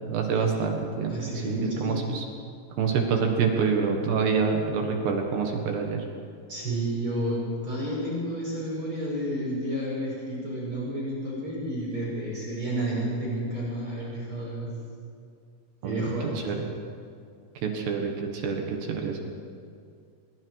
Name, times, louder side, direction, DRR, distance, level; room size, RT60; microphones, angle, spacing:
voice 1, 0.0-1.1 1.4-2.2 2.8-6.0 15.8-16.0 16.5-16.7 17.6-19.2, right 5 dB, 65° right, 2 dB, 3.4 m, -26 dB
voice 2, 1.1-2.2 6.5-14.7 15.8-16.4, right 1 dB, 25° right, -5 dB, 6.3 m, -31 dB
24.5 x 22.5 x 4.8 m, 2.3 s
omnidirectional pair, 5.9 m